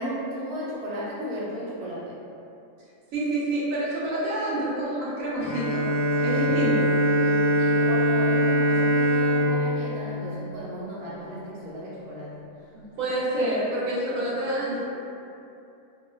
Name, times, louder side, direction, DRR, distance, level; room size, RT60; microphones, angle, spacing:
voice 1, 0.0-2.2 6.2-6.7 7.2-12.4 14.2-14.4 14.7-14.8, equal, 60° right, -9 dB, 0.8 m, -35 dB
voice 2, 3.1-5.9 6.2-6.9 12.7-14.8, right 1 dB, 80° right, -7 dB, 1.1 m, -27 dB
Bowed string instrument, 5.4-11.1, equal, 60° left, 0.6 m, -23 dB
2.5 x 2.3 x 2.2 m, 2.7 s
omnidirectional pair, 1.4 m